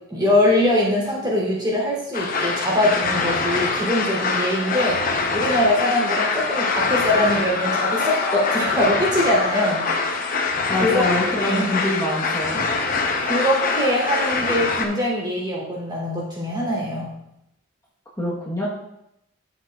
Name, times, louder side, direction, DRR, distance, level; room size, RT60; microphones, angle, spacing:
voice 1, 0.1-9.8 10.8-11.0 11.4-11.7 13.2-17.1, left 1 dB, 20° right, -4 dB, 3.2 m, -22 dB
sound 1, 2.1-14.9, left 4 dB, 45° left, 0.9 m, -24 dB
voice 2, 10.7-12.6 18.2-18.7, left 1 dB, 15° left, -7 dB, 1.3 m, -24 dB
11.5 x 7.3 x 2.4 m, 0.81 s
head